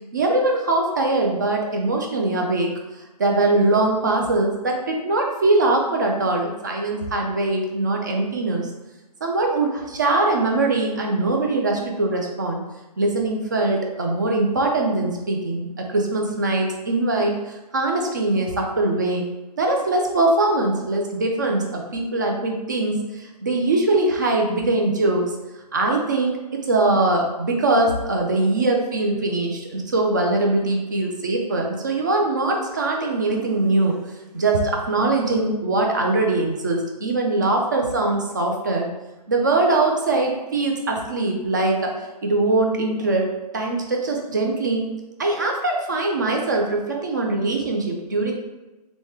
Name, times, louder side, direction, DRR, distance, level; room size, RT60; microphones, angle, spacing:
voice 1, 0.1-8.7 9.2-12.6 13.0-19.2 19.6-25.3 25.7-34.0 34.3-38.9 39.3-41.9 42.2-43.3 43.5-44.8 45.2-48.3, right 2 dB, 30° right, 1 dB, 0.4 m, -22 dB
3.2 x 3.0 x 3.4 m, 1.1 s
hypercardioid pair, 170°, 21 cm